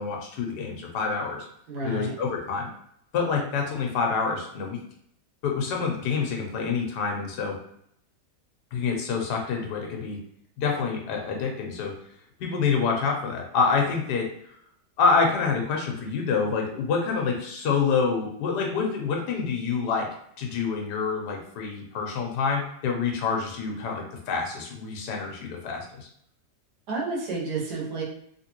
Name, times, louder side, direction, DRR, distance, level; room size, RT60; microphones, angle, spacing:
voice 1, 0.0-1.5 1.8-2.7 3.1-4.8 5.4-7.6 8.7-10.2 10.6-11.9 12.4-14.3 15.0-20.1 20.4-26.1, left 5 dB, 75° left, 1 dB, 1.3 m, -27 dB
voice 2, 1.7-2.2 26.9-28.0, right 2 dB, 70° right, -3 dB, 1.4 m, -30 dB
3.3 x 2.8 x 2.9 m, 0.70 s
omnidirectional pair, 1.9 m